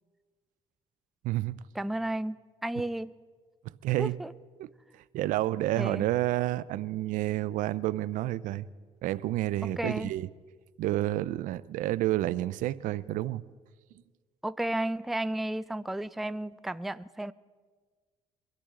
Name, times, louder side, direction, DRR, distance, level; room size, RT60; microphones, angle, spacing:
voice 1, 1.2-1.6 3.8-4.1 4.6-4.7 5.1-8.6 9.0-10.3 10.8-13.4, right 15 dB, 80° right, 0.5 m, -29 dB
voice 2, 1.7-2.4 2.6-3.1 4.0-4.3 5.8-6.1 9.6-10.1 14.4-17.3, right 1 dB, ahead, 0.3 m, -33 dB
23.5 x 13.5 x 3.8 m
cardioid pair, 100°, 13 cm